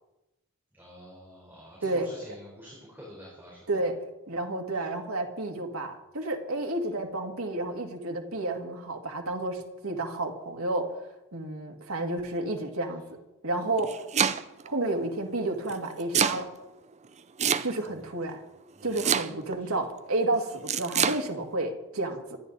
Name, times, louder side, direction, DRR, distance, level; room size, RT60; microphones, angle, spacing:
voice 1, 0.7-3.8 4.7-4.9 17.8-18.2 18.7-19.0 19.6-19.8, equal, 10° right, -5 dB, 4.3 m, -49 dB
voice 2, 4.3-10.9 11.3-13.2 13.4-14.0 14.6-16.5 17.6-18.4 18.8-22.4, right 2 dB, 90° right, 3 dB, 2.2 m, -31 dB
Domestic sounds home sounds, 13.6-14.7 15.7-16.4 17.4-18.0 19.0-19.6 20.7-21.2, right 7 dB, 35° right, 0.6 m, -26 dB
26.0 x 10.5 x 4.1 m, 0.96 s
head